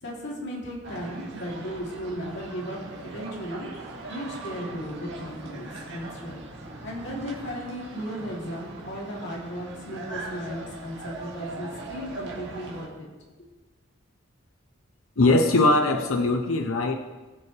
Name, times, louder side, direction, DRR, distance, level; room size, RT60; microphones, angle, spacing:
voice 1, 0.0-3.7 4.1-6.4 6.8-13.1, equal, 55° left, -4 dB, 3.0 m, -36 dB
sound 1, 0.8-12.9, right 2 dB, 60° right, 2.0 m, -40 dB
voice 2, 15.2-17.0, left 2 dB, 85° left, 4 dB, 0.8 m, -21 dB
19.5 x 7.2 x 3.3 m, 1.2 s
head